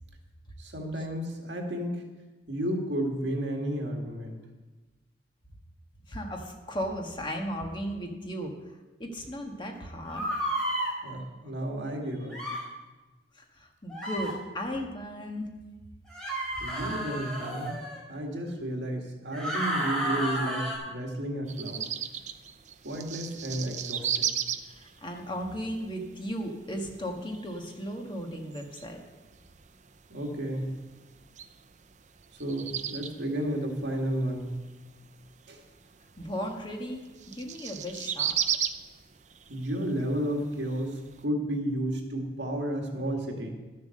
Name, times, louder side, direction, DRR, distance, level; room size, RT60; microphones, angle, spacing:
voice 1, 0.6-2.0 2.5-4.4 11.0-12.4 16.6-17.7 18.1-21.9 22.8-24.3 30.1-30.8 32.4-34.6 35.5-35.6 39.5-43.5, right 1 dB, 70° right, 1 dB, 2.0 m, -32 dB
voice 2, 6.1-8.5 9.0-10.2 13.3-15.5 24.8-29.0 36.2-38.4, equal, 25° left, 2 dB, 1.4 m, -36 dB
sound 1, 10.1-10.9 12.3-12.6 13.9-14.3 16.1-18.0 19.3-20.8, right 1 dB, 5° left, 3.4 m, -31 dB
sound 2, 21.5-41.2, right 9 dB, 40° right, 0.5 m, -37 dB
12.0 x 7.4 x 6.6 m, 1.2 s
head